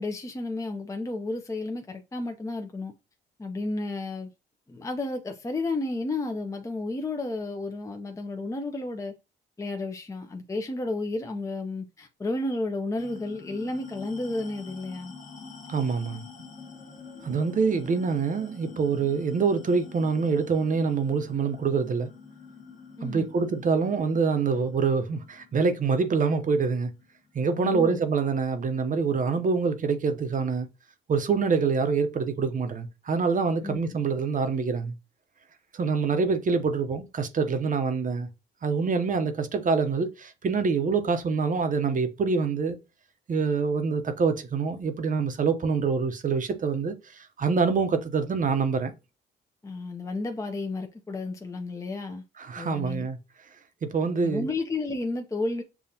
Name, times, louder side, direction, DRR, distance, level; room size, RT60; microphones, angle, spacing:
voice 1, 0.0-2.9 3.4-4.3 4.7-9.1 9.6-15.1 17.7-17.8 23.0-23.3 27.6-28.0 33.6-33.8 49.6-52.2 52.6-53.1 54.2-55.6, left 2 dB, 15° left, 0.7 m, -32 dB
sound 1, 13.0-27.8, left 4 dB, 40° left, 1.3 m, -47 dB
voice 2, 15.7-16.2 17.2-22.1 23.0-26.9 27.3-30.7 31.1-34.9 35.7-38.3 38.6-42.8 43.3-48.9 52.4-53.2 53.8-54.5, right 5 dB, 40° right, 0.8 m, -25 dB
6.9 x 2.4 x 2.8 m
cardioid pair, 90°, 20 cm